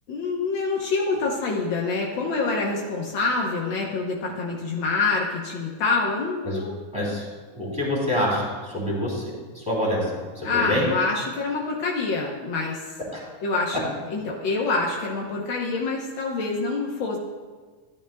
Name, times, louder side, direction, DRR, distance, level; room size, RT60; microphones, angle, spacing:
voice 1, 0.1-6.7 10.4-12.9 13.4-17.2, left 3 dB, 85° left, -3 dB, 1.0 m, -26 dB
voice 2, 6.9-7.3 7.5-10.8 13.1-13.2, left 1 dB, ahead, -5 dB, 2.5 m, -26 dB
13.5 x 10.5 x 2.3 m, 1.4 s
omnidirectional pair, 3.6 m